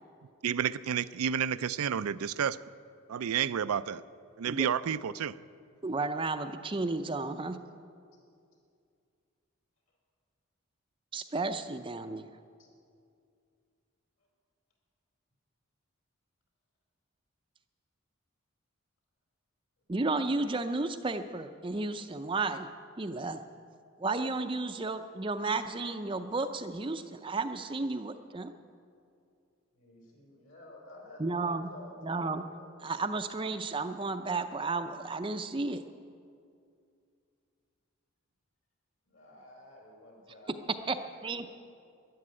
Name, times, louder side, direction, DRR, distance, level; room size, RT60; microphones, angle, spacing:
voice 1, 0.4-2.6 3.1-4.0 4.4-5.3, right 8 dB, 85° right, 15 dB, 0.4 m, -30 dB
voice 2, 5.8-7.6 11.1-12.3 19.9-22.7 23.0-23.4 24.0-28.5 31.2-31.7 32.0-32.4 32.8-35.8 40.9-41.0 41.2-41.5, right 3 dB, 25° right, 8 dB, 0.5 m, -33 dB
voice 3, 29.7-33.4 39.0-40.9 41.2-41.4, left 1 dB, 65° left, 0 dB, 4.7 m, -52 dB
12.5 x 11.5 x 9.7 m, 2.4 s
head